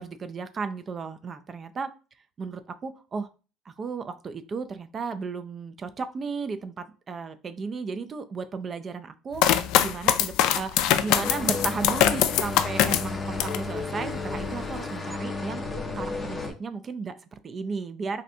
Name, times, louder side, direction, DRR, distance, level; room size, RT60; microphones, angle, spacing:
voice 1, 0.0-1.9 2.4-3.3 3.7-15.6 15.9-18.2, right 4 dB, 30° right, 10 dB, 0.3 m, -34 dB
sound 1, 9.4-13.7 14.1-14.8, left 11 dB, 70° left, 0.3 m, -23 dB
sound 2, 11.1-16.5, left 3 dB, 10° left, 0.6 m, -33 dB
3.1 x 2.6 x 2.6 m, 0.34 s
cardioid pair, 140°, 0 cm